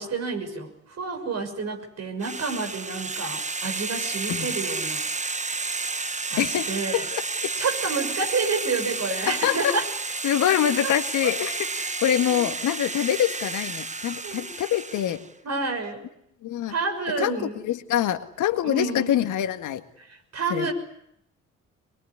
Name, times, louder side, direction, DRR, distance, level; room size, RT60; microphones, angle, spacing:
voice 1, 0.0-5.1 6.3-7.0 7.6-9.9 11.2-11.4 12.2-12.4 14.2-14.4 15.4-16.0 16.7-17.6 18.6-19.2 20.0-20.7, right 4 dB, 50° right, 4 dB, 6.6 m, -29 dB
sound 1, 2.2-15.3, right 3 dB, 20° right, 1.4 m, -31 dB
voice 2, 6.4-7.5 9.3-9.8 10.2-15.2 16.4-16.8 17.2-19.8 20.5-20.7, left 11 dB, 60° left, 8 dB, 1.9 m, -25 dB
23.5 x 23.0 x 9.9 m, 0.78 s
hypercardioid pair, 50°, 34 cm